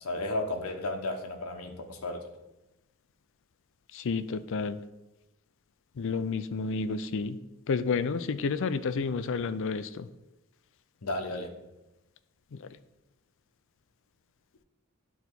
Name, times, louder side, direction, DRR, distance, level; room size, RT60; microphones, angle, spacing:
voice 1, 0.0-2.3 11.0-11.5, left 2 dB, 85° left, 3 dB, 1.0 m, -33 dB
voice 2, 3.9-4.8 6.0-7.4 7.7-10.1 12.5-12.6, left 4 dB, 60° left, 13 dB, 0.4 m, -30 dB
10.5 x 4.0 x 4.5 m, 1.0 s
head